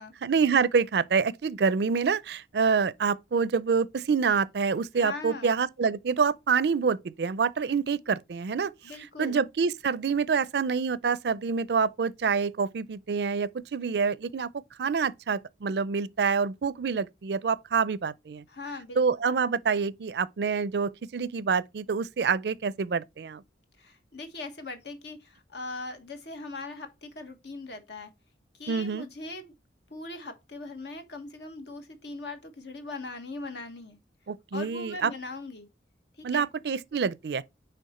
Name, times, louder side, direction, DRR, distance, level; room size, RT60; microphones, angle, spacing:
voice 1, 0.2-8.7 9.2-14.5 14.8-18.4 19.0-23.4 28.7-29.1 34.3-35.1 36.2-37.4, right 5 dB, 65° right, 0.4 m, -27 dB
voice 2, 4.9-5.6 8.8-9.4 18.5-19.0 23.8-28.1 28.6-29.5 29.9-34.0 34.5-35.7 36.2-36.5, left 3 dB, 70° left, 1.2 m, -40 dB
9.3 x 3.4 x 4.2 m
head